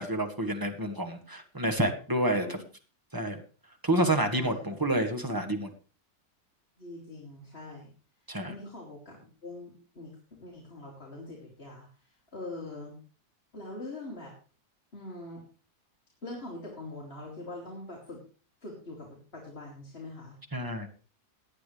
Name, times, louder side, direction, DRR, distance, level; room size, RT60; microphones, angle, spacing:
voice 1, 0.0-2.6 3.1-3.4 3.8-5.7 8.3-8.5 20.5-20.9, right 1 dB, 15° right, 6 dB, 1.4 m, -29 dB
voice 2, 2.3-2.6 4.3-4.8 6.8-7.9 8.5-10.1 10.4-13.0 13.5-14.3 14.9-15.4 16.2-18.2 18.6-20.4, left 2 dB, 35° left, -2 dB, 3.1 m, -43 dB
17.5 x 10.0 x 3.3 m, 0.37 s
omnidirectional pair, 1.8 m